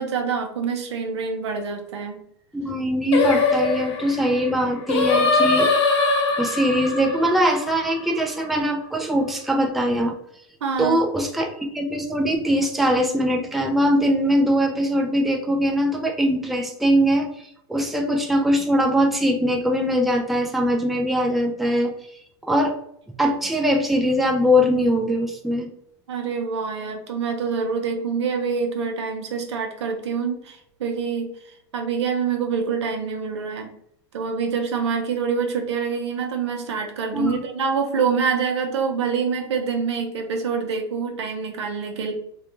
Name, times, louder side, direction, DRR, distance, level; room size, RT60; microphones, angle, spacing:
voice 1, 0.0-2.2 10.6-11.0 26.1-33.7 34.1-42.1, right 5 dB, 85° right, 4 dB, 0.6 m, -26 dB
voice 2, 2.5-5.7 6.4-10.1 10.8-17.3 17.7-21.9 22.5-22.7 23.2-25.7 37.1-37.4, equal, ahead, 2 dB, 0.3 m, -21 dB
Singing, 3.1-8.4, left 3 dB, 85° left, 0.6 m, -22 dB
2.3 x 2.2 x 2.9 m, 0.72 s
hypercardioid pair, 115°, 14 cm